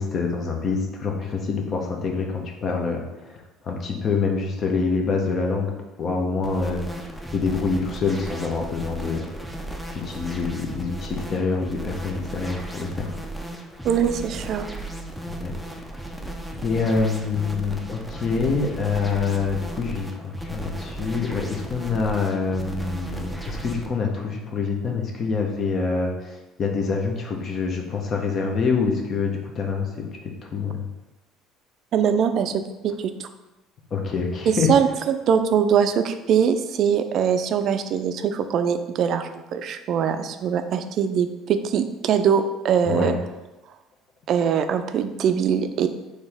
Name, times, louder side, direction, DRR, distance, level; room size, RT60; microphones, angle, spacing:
voice 1, 0.0-5.7 6.0-9.2 9.9-13.1 15.2-15.7 16.6-30.8 33.9-34.7 42.8-43.1, left 4 dB, 40° left, 2 dB, 0.9 m, -26 dB
sound 1, 6.4-23.9, right 1 dB, ahead, 0.5 m, -35 dB
voice 2, 13.8-14.7 31.9-33.3 34.5-43.1 44.3-45.9, right 7 dB, 55° right, 9 dB, 0.4 m, -22 dB
4.3 x 3.2 x 3.5 m, 1.0 s
cardioid pair, 105°, 0 cm